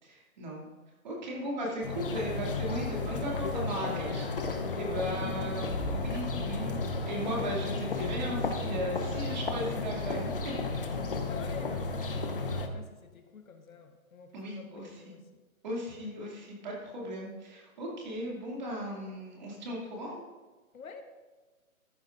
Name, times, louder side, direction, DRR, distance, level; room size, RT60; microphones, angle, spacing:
voice 1, 0.0-0.7 1.0-6.8 7.0-10.6 14.3-15.2 15.6-20.3, right 1 dB, 30° right, -3 dB, 2.5 m, -37 dB
sound 1, 1.8-12.7, left 3 dB, 40° left, 0.7 m, -33 dB
voice 2, 11.2-15.4 15.7-16.1 20.7-21.0, left 5 dB, 70° left, 6 dB, 1.3 m, -48 dB
13.5 x 11.0 x 2.5 m, 1.3 s
hypercardioid pair, 175°, 43 cm